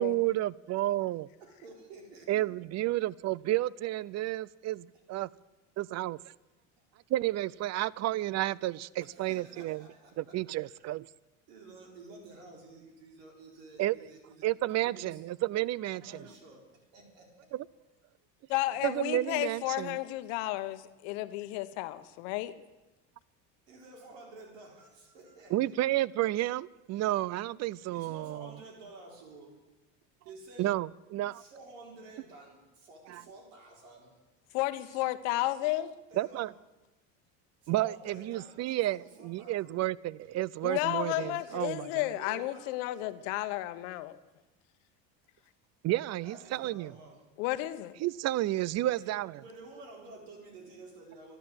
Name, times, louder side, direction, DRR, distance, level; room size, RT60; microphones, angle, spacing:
voice 1, 0.0-1.3 2.3-5.3 5.8-6.2 7.1-9.8 10.2-11.1 13.8-13.9 14.4-16.0 17.5-17.6 18.8-20.0 25.5-28.5 30.6-31.4 33.1-33.2 36.2-36.5 37.7-41.9 45.8-46.9 48.0-49.3, right 15 dB, 45° right, 0.5 m, -31 dB
voice 2, 1.4-2.5 6.8-6.9 9.0-10.8 11.5-15.2 15.9-17.5 18.7-18.8 22.0-22.1 23.7-25.8 27.9-29.6 30.2-30.7 31.3-34.2 36.1-36.5 37.6-39.8 40.2-40.3 40.8-41.6 42.1-42.7 45.4-45.5 46.2-47.2 48.9-51.4, right 3 dB, 85° right, 4.3 m, -51 dB
voice 3, 18.5-22.5 34.5-36.0 40.6-44.2 47.4-48.0, left 16 dB, 80° left, 1.1 m, -32 dB
13.5 x 11.5 x 7.9 m
supercardioid pair, 100°, 38 cm